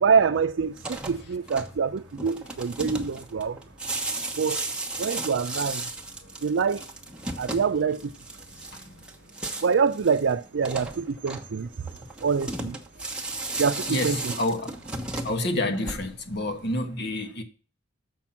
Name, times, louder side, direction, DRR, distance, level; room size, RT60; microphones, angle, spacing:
voice 1, 0.0-3.6 4.4-4.6 5.0-5.9 6.4-6.8 7.4-8.1 9.6-11.7 12.2-12.8 13.6-14.3, right 5 dB, 75° right, 0.5 m, -25 dB
sound 1, 0.7-16.4, right 2 dB, 5° right, 1.1 m, -35 dB
voice 2, 13.9-14.7 15.2-17.4, left 1 dB, 60° left, 1.5 m, -28 dB
7.1 x 5.9 x 7.2 m
head